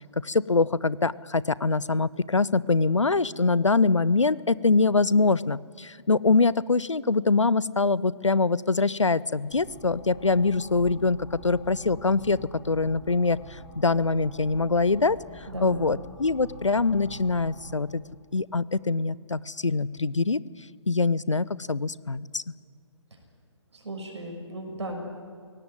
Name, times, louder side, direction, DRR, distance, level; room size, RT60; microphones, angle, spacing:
voice 1, 0.2-12.4 12.6-15.2 15.6-18.0 18.3-20.4 20.9-22.4, left 3 dB, 85° left, 20 dB, 0.7 m, -24 dB
sound 1, 9.5-17.7, equal, 25° left, 4.9 m, -46 dB
voice 2, 15.5-15.9 23.7-25.0, right 1 dB, 70° right, 2 dB, 6.1 m, -36 dB
21.5 x 17.5 x 9.5 m, 2.2 s
figure-of-eight pair, 135°, 15 cm